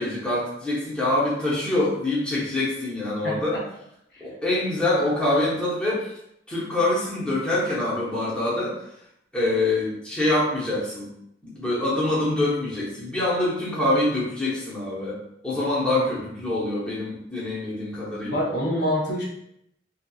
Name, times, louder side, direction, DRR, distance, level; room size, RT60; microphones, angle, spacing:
voice 1, 0.0-3.6 4.2-6.2 6.5-8.8 9.3-11.1 11.4-18.5, left 1 dB, 5° left, -9 dB, 0.8 m, -25 dB
voice 2, 3.2-3.6 4.1-4.2 15.5-15.6 18.2-19.2, equal, 60° left, -5 dB, 0.7 m, -26 dB
2.7 x 2.3 x 2.3 m, 0.75 s
head